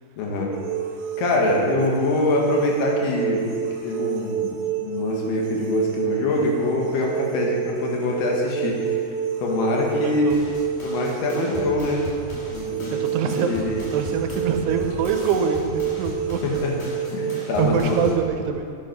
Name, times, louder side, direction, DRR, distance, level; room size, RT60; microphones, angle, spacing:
voice 1, 0.2-0.5 1.2-9.0 9.4-10.4 10.8-12.1 12.5-13.2 13.5-13.8 16.4-16.7 17.1-18.0, left 2 dB, 75° left, -1 dB, 3.3 m, -24 dB
sound 1, 0.5-18.2, right 9 dB, 75° right, 2.4 m, -29 dB
voice 2, 10.0-10.4 10.8-10.9 13.0-16.6 17.4-18.7, right 6 dB, 90° right, 6 dB, 2.8 m, -25 dB
sound 2, 10.3-18.3, left 1 dB, 55° left, 3.9 m, -37 dB
9.8 x 7.9 x 5.9 m, 2.3 s
omnidirectional pair, 4.7 m